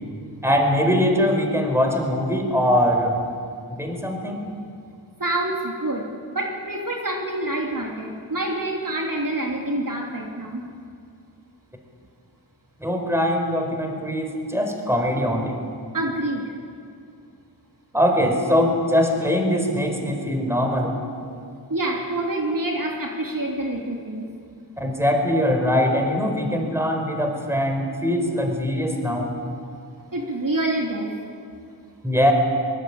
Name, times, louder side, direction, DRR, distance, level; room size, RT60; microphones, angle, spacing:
voice 1, 0.4-3.2 3.7-4.5 12.8-15.6 17.9-21.0 24.8-29.3 32.0-32.3, equal, 5° right, 3 dB, 5.2 m, -22 dB
voice 2, 5.2-10.6 15.9-16.4 21.7-24.2 30.1-31.1, right 1 dB, 50° right, 0 dB, 3.2 m, -27 dB
22.5 x 21.0 x 8.8 m, 2.3 s
cardioid pair, 55°, 42 cm